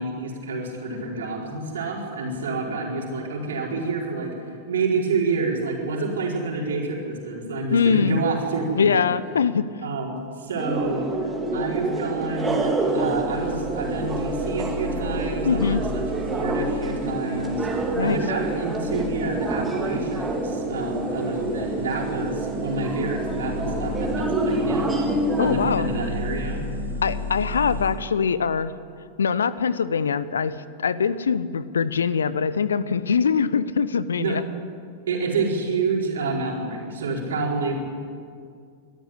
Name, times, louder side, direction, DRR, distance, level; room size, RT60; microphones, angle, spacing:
voice 1, 0.0-4.3 4.7-9.1 9.8-25.0 25.4-26.6 34.2-34.4 35.1-37.8, right 3 dB, 65° right, -1 dB, 4.6 m, -28 dB
voice 2, 7.7-8.2 8.7-9.7 15.4-15.8 17.9-18.2 25.4-25.9 27.0-28.7 29.2-34.4, left 6 dB, 70° left, 17 dB, 0.7 m, -23 dB
sound 1, 10.6-25.5, right 2 dB, 15° right, 3.0 m, -27 dB
sound 2, 11.0-27.9, left 1 dB, 90° right, 6.7 m, -34 dB
23.0 x 13.0 x 9.9 m, 2.2 s
figure-of-eight pair, 90°, 0 cm